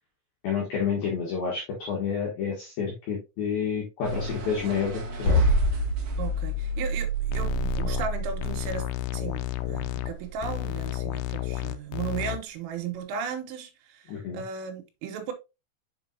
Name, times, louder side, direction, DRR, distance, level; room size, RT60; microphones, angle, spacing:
voice 1, 0.4-5.4 14.1-14.4, left 6 dB, 60° left, 2.8 m, -29 dB
sound 1, 4.0-8.7 9.0-10.6, right 2 dB, 55° right, 2.4 m, -39 dB
sound 2, 5.3-11.4, equal, 25° left, 3.1 m, -27 dB
voice 2, 6.2-8.9 9.1-15.3, right 6 dB, 85° right, 3.7 m, -35 dB
sound 3, 7.3-8.1 8.4-10.1 10.4-12.4, left 15 dB, 85° left, 2.7 m, -31 dB
7.2 x 5.4 x 2.8 m
omnidirectional pair, 5.7 m